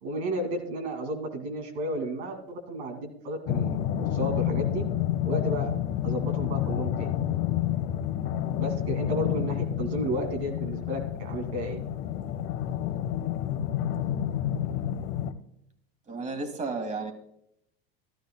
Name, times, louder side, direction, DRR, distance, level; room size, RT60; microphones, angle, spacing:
voice 1, 0.0-4.8 5.2-5.7 6.0-7.2 8.6-11.8, right 1 dB, 85° right, 3 dB, 2.4 m, -32 dB
sound 1, 3.5-15.3, left 11 dB, 55° left, 0.9 m, -29 dB
voice 2, 16.1-17.1, right 3 dB, 25° right, 7 dB, 1.9 m, -32 dB
14.5 x 13.0 x 2.2 m, 0.76 s
hypercardioid pair, 100°, 31 cm